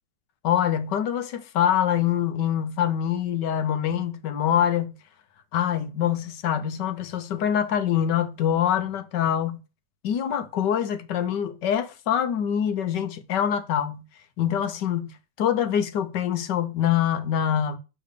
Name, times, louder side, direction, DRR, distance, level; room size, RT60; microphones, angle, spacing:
voice 1, 0.4-4.9 5.5-9.6 10.0-14.0 14.4-15.1 15.4-17.8, left 9 dB, 80° left, 1.4 m, -25 dB
6.6 x 3.9 x 6.4 m
omnidirectional pair, 1.9 m